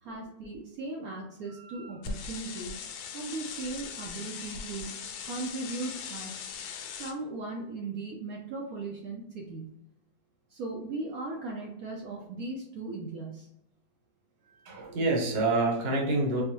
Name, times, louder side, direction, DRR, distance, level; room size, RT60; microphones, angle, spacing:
voice 1, 0.0-2.7 3.1-4.9 5.2-6.4 7.0-9.8 10.5-13.5, right 3 dB, 70° right, -1 dB, 1.0 m, -38 dB
voice 2, 1.6-1.9 14.5-16.4, right 2 dB, 45° right, -1 dB, 1.0 m, -28 dB
sound 1, 2.0-7.1, left 6 dB, 80° left, 1.1 m, -40 dB
4.4 x 2.1 x 2.9 m, 0.81 s
omnidirectional pair, 1.8 m